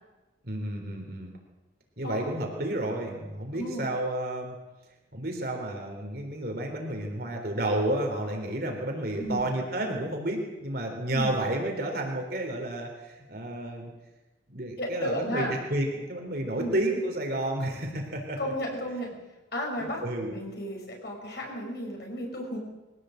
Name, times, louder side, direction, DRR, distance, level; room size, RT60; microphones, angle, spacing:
voice 1, 0.4-1.3 2.0-4.6 5.1-13.9 14.5-18.4 19.8-20.3, right 1 dB, 55° right, 2 dB, 3.7 m, -31 dB
voice 2, 9.2-9.5 11.1-11.3 14.8-15.6 16.5-16.8 18.4-19.1 19.5-22.6, equal, 55° left, 1 dB, 6.0 m, -33 dB
22.5 x 16.5 x 8.0 m, 1.1 s
head